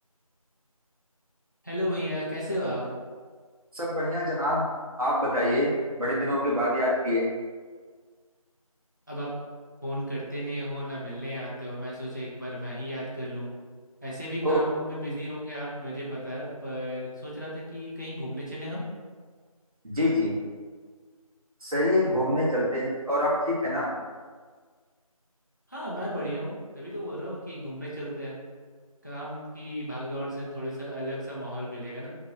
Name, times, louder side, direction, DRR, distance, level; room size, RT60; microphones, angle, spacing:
voice 1, 1.6-2.8 9.1-9.3 9.8-13.5 14.0-18.8 25.7-28.3 29.0-32.1, equal, 30° left, -6 dB, 0.6 m, -34 dB
voice 2, 3.7-4.6 5.0-7.2 14.4-14.6 19.8-20.3 21.6-23.9, left 1 dB, 70° right, -7 dB, 1.3 m, -25 dB
2.9 x 2.8 x 2.5 m, 1.5 s
figure-of-eight pair, 170°, 19 cm